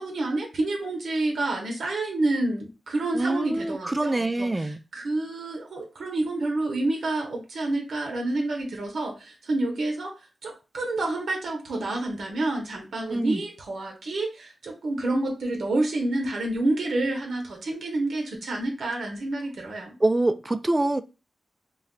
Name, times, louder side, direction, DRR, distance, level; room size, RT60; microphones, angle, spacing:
voice 1, 0.0-10.1 10.4-19.9, right 2 dB, 80° right, 2 dB, 0.7 m, -28 dB
voice 2, 3.1-4.8 13.1-13.4 20.0-21.0, right 2 dB, 20° right, 11 dB, 0.3 m, -25 dB
2.3 x 2.2 x 3.6 m, 0.29 s
cardioid pair, 65°, 0 cm